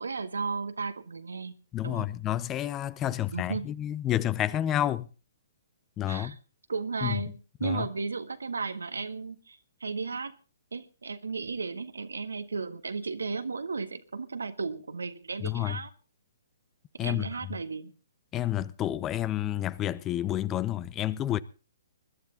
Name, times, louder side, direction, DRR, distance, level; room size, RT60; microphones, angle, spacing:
voice 1, 0.0-1.5 1.8-2.1 3.1-3.7 6.1-6.3 6.7-10.3 10.7-15.9 17.0-17.9, right 4 dB, 80° right, 1.6 m, -34 dB
voice 2, 1.7-5.1 6.0-6.3 7.0-7.2 7.6-7.9 15.4-15.8 17.0-17.3 18.3-21.4, left 12 dB, 20° left, 0.7 m, -29 dB
21.0 x 11.5 x 3.9 m
figure-of-eight pair, 130°, 0 cm